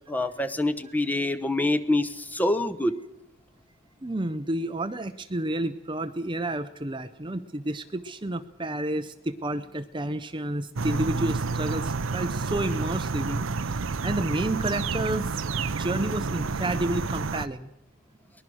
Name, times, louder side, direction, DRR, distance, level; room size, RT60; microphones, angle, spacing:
voice 1, 0.1-2.9, left 1 dB, 10° left, 12 dB, 1.0 m, -26 dB
voice 2, 4.0-17.7, right 1 dB, 25° right, 10 dB, 0.7 m, -30 dB
sound 1, 10.8-17.5, right 4 dB, 70° right, 0.7 m, -29 dB
23.0 x 20.5 x 6.3 m, 0.81 s
head